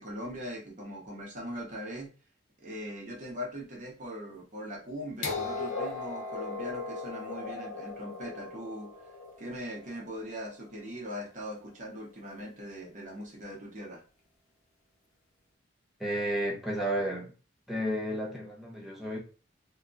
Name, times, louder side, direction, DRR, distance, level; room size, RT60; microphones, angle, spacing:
voice 1, 0.0-2.1 2.6-9.1 9.4-14.0, equal, 40° right, 0.7 m, -40 dB
sound 1, 5.2-11.1 12.2-12.3, left 3 dB, 90° left, 0.6 m, -38 dB
voice 2, 16.0-17.3 17.7-19.2, equal, ahead, 0.6 m, -32 dB
2.7 x 2.2 x 2.5 m
head